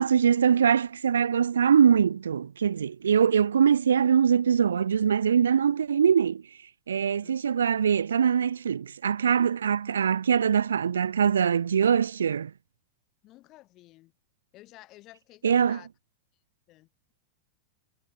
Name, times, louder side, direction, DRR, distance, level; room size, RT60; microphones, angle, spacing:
voice 1, 0.0-6.4 6.9-12.5 15.4-15.8, right 7 dB, 70° right, 0.6 m, -23 dB
voice 2, 13.2-14.1 14.5-15.9 16.7-16.9, left 17 dB, 35° left, 7.4 m, -52 dB
figure-of-eight pair, 90°, 0 cm